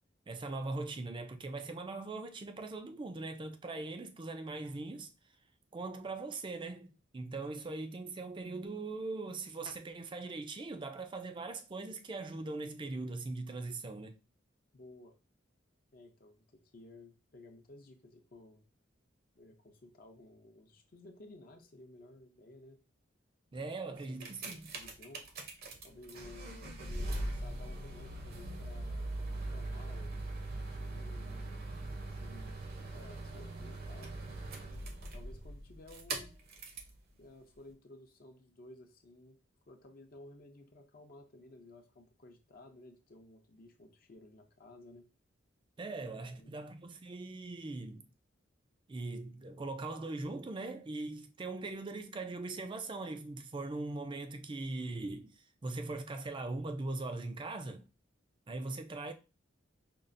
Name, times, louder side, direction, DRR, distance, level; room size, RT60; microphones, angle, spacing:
voice 1, 0.3-5.1 5.7-14.2 23.5-24.7 45.8-48.0 48.9-57.9 58.5-59.1, right 3 dB, 25° right, 0.4 m, -40 dB
voice 2, 14.7-15.2 15.9-18.6 19.3-22.8 23.6-25.2 25.8-30.3 30.6-31.6 32.0-34.2 35.1-36.4 37.2-39.4 39.7-45.1 46.2-46.5, left 2 dB, 50° left, 0.6 m, -55 dB
sound 1, 24.0-37.0 37.7-37.8, right 2 dB, 55° right, 0.7 m, -41 dB
5.3 x 2.4 x 2.5 m
head